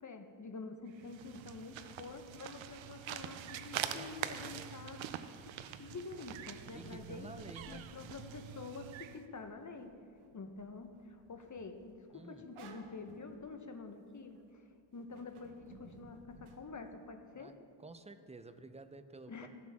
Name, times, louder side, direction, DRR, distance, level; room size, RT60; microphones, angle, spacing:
voice 1, 0.0-5.1 5.8-7.3 7.7-9.9 10.3-17.5 19.3-19.5, left 4 dB, 35° left, 6 dB, 1.2 m, -48 dB
sound 1, 0.9-9.2, right 10 dB, 70° right, 0.7 m, -44 dB
sound 2, 2.0-4.2 5.7-14.5 14.9-16.6, right 4 dB, 90° right, 1.1 m, -60 dB
voice 2, 3.8-4.7 6.7-7.9 12.1-12.5 17.3-17.5 17.8-19.5, right 3 dB, 15° right, 10 dB, 0.6 m, -51 dB
16.0 x 6.1 x 3.7 m, 2.3 s
cardioid pair, 55°, 48 cm